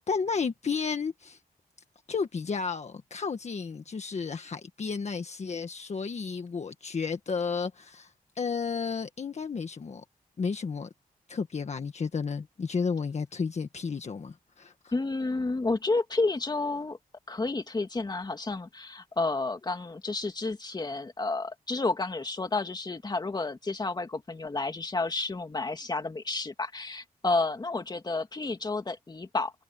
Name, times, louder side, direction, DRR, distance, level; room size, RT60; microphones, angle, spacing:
voice 1, 0.0-1.4 2.1-10.0 10.4-10.9 11.3-14.7, left 5 dB, 45° left, 1.5 m, -32 dB
voice 2, 14.9-17.0 17.3-29.5, left 3 dB, 25° left, 2.2 m, -31 dB
wide cardioid pair, 120°, 15 cm